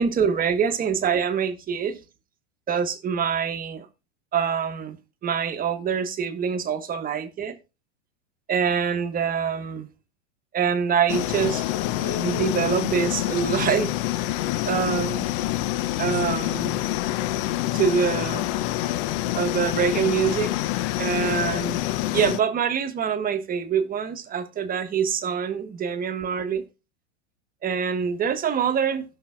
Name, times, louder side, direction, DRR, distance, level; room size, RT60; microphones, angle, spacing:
voice 1, 0.0-2.0 2.7-3.9 4.3-5.0 5.2-7.6 8.5-9.9 10.5-11.6 12.0-13.9 14.6-15.2 16.0-16.8 17.7-18.5 19.3-20.5 21.0-21.8 22.1-26.6 27.6-29.0, right 7 dB, 25° right, 1.2 m, -25 dB
sound 1, 11.1-22.4, left 15 dB, 45° left, 0.6 m, -26 dB
16.0 x 6.0 x 2.4 m
hypercardioid pair, 120°, 37 cm